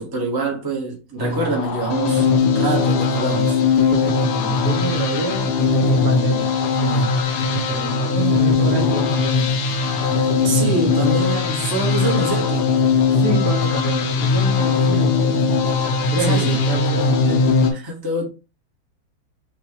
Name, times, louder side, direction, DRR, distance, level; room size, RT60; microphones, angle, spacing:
voice 1, 0.0-3.6 10.4-12.7 16.2-16.6 17.2-17.4 17.7-18.3, right 3 dB, 15° right, 1.0 m, -25 dB
sound 1, 1.2-17.7, left 4 dB, 65° left, 1.2 m, -19 dB
voice 2, 3.9-5.5 5.9-7.2 7.5-9.5 13.1-15.4 16.1-17.3, right 3 dB, 55° right, 1.5 m, -28 dB
6.6 x 2.6 x 2.9 m
omnidirectional pair, 2.1 m